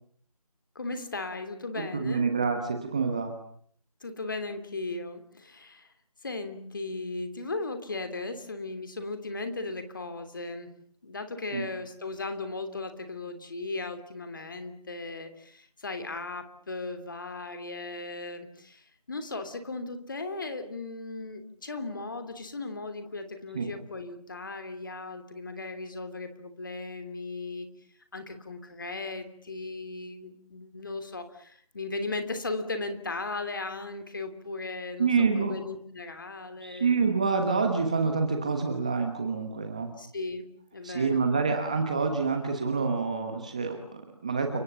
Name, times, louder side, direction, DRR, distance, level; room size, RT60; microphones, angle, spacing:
voice 1, 0.7-2.3 4.0-5.9 6.2-10.7 11.0-27.7 28.1-37.0 40.0-40.5 40.7-41.3, left 3 dB, 30° left, 9 dB, 3.1 m, -37 dB
voice 2, 1.8-3.3 11.5-11.7 23.5-23.7 35.0-35.6 36.6-39.9 40.8-44.6, right 4 dB, 10° right, 5 dB, 1.1 m, -27 dB
30.0 x 25.5 x 7.0 m, 0.62 s
figure-of-eight pair, 170°, 20 cm